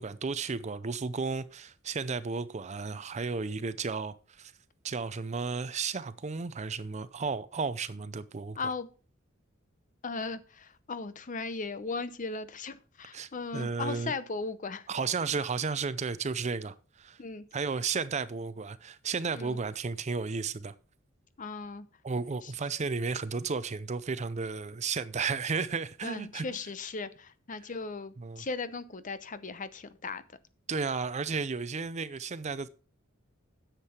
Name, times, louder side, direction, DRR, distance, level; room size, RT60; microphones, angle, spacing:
voice 1, 0.0-4.5 4.8-8.6 13.1-14.1 14.9-17.2 17.5-20.7 22.0-26.4 28.2-28.4 30.7-32.7, right 4 dB, 35° right, 0.5 m, -33 dB
voice 2, 8.6-8.9 10.0-14.9 17.2-17.5 19.3-19.6 21.4-21.9 22.4-22.5 26.0-30.2, left 4 dB, 40° left, 0.7 m, -37 dB
10.0 x 7.5 x 4.3 m
head